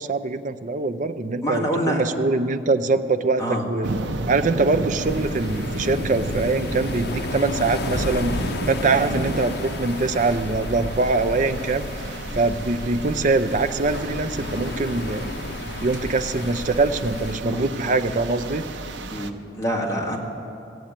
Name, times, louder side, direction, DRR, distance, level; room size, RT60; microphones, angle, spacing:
voice 1, 0.0-4.0 4.3-11.9 12.3-15.3 15.8-18.6, right 3 dB, 45° right, 9 dB, 0.5 m, -23 dB
voice 2, 1.4-2.0 3.4-3.6 8.8-9.0 17.4-17.7 19.1-20.2, equal, 20° left, -2 dB, 1.9 m, -26 dB
sound 1, 3.8-19.3, right 2 dB, 80° right, 0.7 m, -32 dB
sound 2, 5.0-17.4, left 2 dB, 60° left, 0.7 m, -32 dB
16.0 x 7.9 x 8.8 m, 2.7 s
head